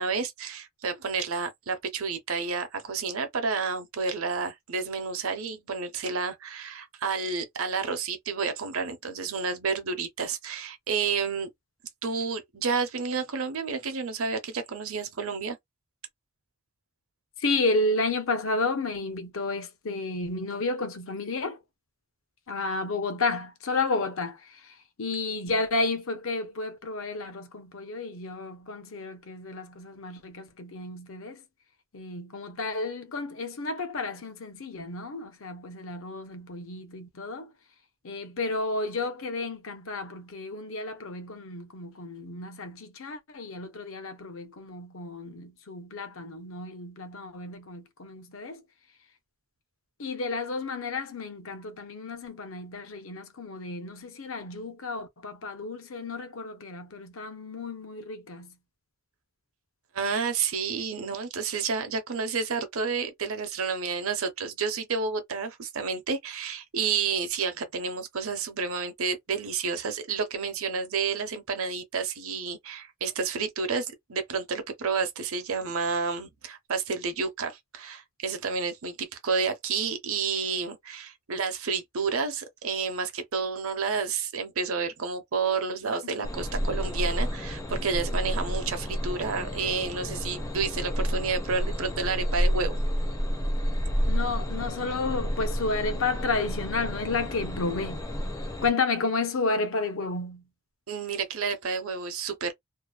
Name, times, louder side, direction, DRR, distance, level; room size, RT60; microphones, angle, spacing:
voice 1, 0.0-11.5 12.0-15.6 59.9-92.8 100.9-102.5, right 5 dB, 75° right, 0.8 m, -30 dB
voice 2, 17.4-21.6 22.5-24.4 25.0-31.4 31.9-37.5 38.0-48.6 50.0-58.5 94.1-98.0 98.6-100.4, left 3 dB, 65° left, 0.7 m, -31 dB
sound 1, 86.2-98.7, equal, 15° left, 0.5 m, -30 dB
2.7 x 2.1 x 2.4 m
head